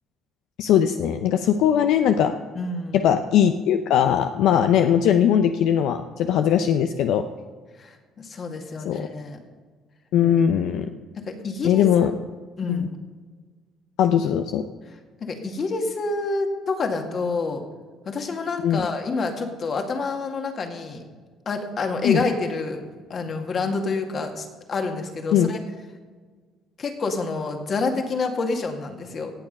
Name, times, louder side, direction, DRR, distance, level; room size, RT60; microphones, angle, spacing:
voice 1, 0.6-2.3 2.9-7.3 8.8-9.1 10.1-10.9 11.6-12.1 12.7-12.9 14.0-14.6 18.6-18.8 22.0-22.2 25.3-25.5, left 9 dB, 75° left, 7 dB, 0.6 m, -20 dB
voice 2, 2.6-3.0 7.8-9.4 11.2-11.8 12.6-12.9 15.2-17.6 18.1-21.0 21.5-22.8 23.1-25.6 26.8-29.3, left 3 dB, 45° left, 4 dB, 2.0 m, -28 dB
17.5 x 7.4 x 5.4 m, 1.5 s
cardioid pair, 90°, 0 cm